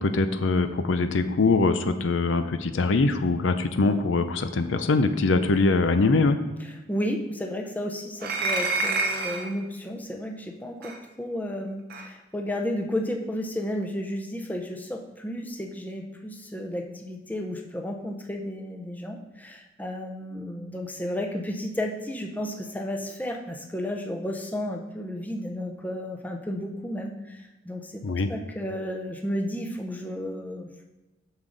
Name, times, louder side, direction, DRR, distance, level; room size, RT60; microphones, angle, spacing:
voice 1, 0.0-6.4 28.0-28.3, left 3 dB, 70° left, 9 dB, 0.5 m, -23 dB
voice 2, 6.9-28.0 28.3-30.8, left 1 dB, 10° left, 3 dB, 0.6 m, -32 dB
sound 1, 8.2-9.5 10.8-11.0 11.9-12.1, right 3 dB, 50° right, 0.8 m, -27 dB
7.2 x 6.5 x 3.9 m, 1.1 s
head